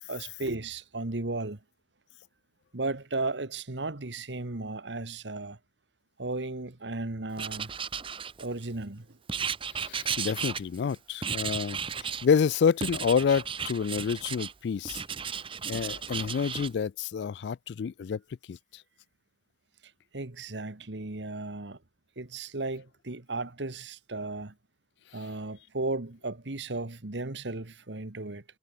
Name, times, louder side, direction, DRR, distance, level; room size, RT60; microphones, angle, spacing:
voice 1, 0.1-1.6 2.7-5.6 6.2-7.7 8.4-9.2 19.8-21.8 22.1-24.5 25.1-28.4, right 2 dB, 80° right, 1.6 m, -35 dB
Writing, 7.4-8.7 9.3-10.9 11.2-12.3 12.8-14.5 14.8-16.7, right 7 dB, 30° right, 0.7 m, -34 dB
voice 2, 9.8-15.0 15.7-18.2 18.5-18.6, left 6 dB, 65° left, 0.3 m, -28 dB
head